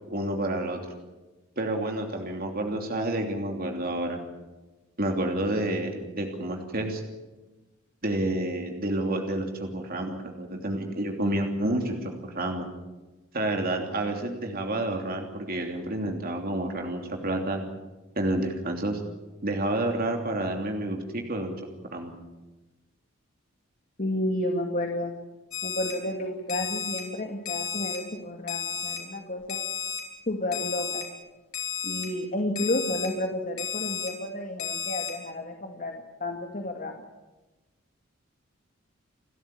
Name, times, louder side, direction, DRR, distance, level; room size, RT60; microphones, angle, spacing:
voice 1, 0.1-0.8 1.6-4.2 5.0-7.0 8.0-12.7 13.3-17.6 18.2-19.0 19.4-21.5 21.8-22.1, right 1 dB, 45° right, 3 dB, 3.0 m, -29 dB
voice 2, 24.0-25.1 25.6-29.6 30.3-31.1 31.8-37.0, left 1 dB, 40° left, 3 dB, 2.2 m, -31 dB
Alarm, 25.5-25.9 26.5-27.0 27.5-28.0 28.5-29.0 29.5-30.0 30.5-31.0 31.5-32.1 32.6-33.1 33.6-34.1 34.6-35.1, left 7 dB, 85° left, 5.9 m, -32 dB
29.5 x 13.5 x 9.5 m, 1.1 s
head